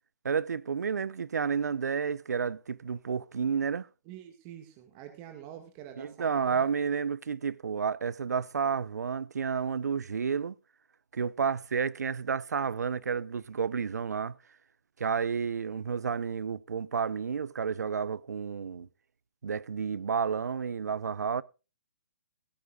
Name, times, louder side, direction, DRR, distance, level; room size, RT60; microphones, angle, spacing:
voice 1, 0.2-3.9 6.0-10.5 11.1-14.4 15.0-18.9 19.4-21.4, right 6 dB, 85° right, 0.8 m, -31 dB
voice 2, 4.1-6.6, right 10 dB, 30° right, 1.9 m, -47 dB
17.0 x 13.5 x 2.4 m
hypercardioid pair, 150°, 9 cm